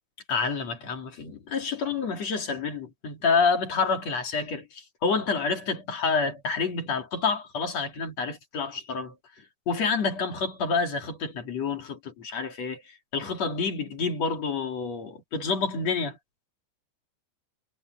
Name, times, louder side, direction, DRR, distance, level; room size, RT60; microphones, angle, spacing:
voice 1, 0.3-9.1 9.7-12.8 13.1-16.2, left 4 dB, 40° left, 3.6 m, -28 dB
omnidirectional pair, 5.3 m